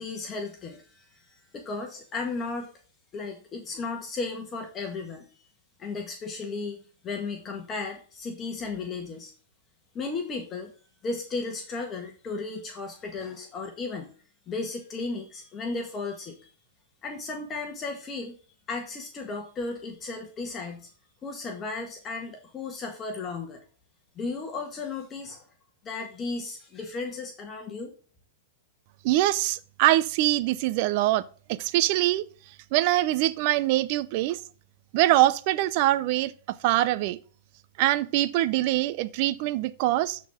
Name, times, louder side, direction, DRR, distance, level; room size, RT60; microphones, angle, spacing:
voice 1, 0.0-2.7 3.1-5.3 5.8-6.8 7.0-9.3 9.9-10.7 11.0-14.1 14.5-16.4 17.0-18.3 18.7-20.9 21.2-23.6 24.2-25.4 25.8-27.9, left 3 dB, 25° left, 1.7 m, -35 dB
voice 2, 29.0-31.2 31.5-32.2 32.7-34.4 34.9-36.3 36.6-37.2 37.8-40.2, right 15 dB, 50° right, 0.6 m, -23 dB
12.5 x 4.5 x 3.7 m
hypercardioid pair, 115°, 0 cm